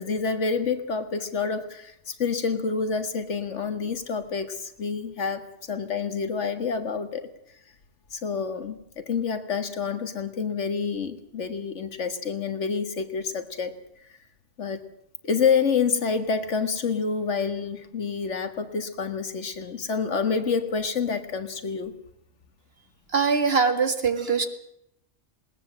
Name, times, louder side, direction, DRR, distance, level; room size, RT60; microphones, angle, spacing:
voice 1, 0.0-7.3 8.1-13.8 14.6-14.8 15.2-21.9, left 5 dB, 75° left, 9 dB, 1.9 m, -28 dB
voice 2, 23.1-24.5, right 5 dB, 55° right, 8 dB, 2.0 m, -22 dB
20.0 x 19.5 x 7.7 m, 0.77 s
omnidirectional pair, 1.2 m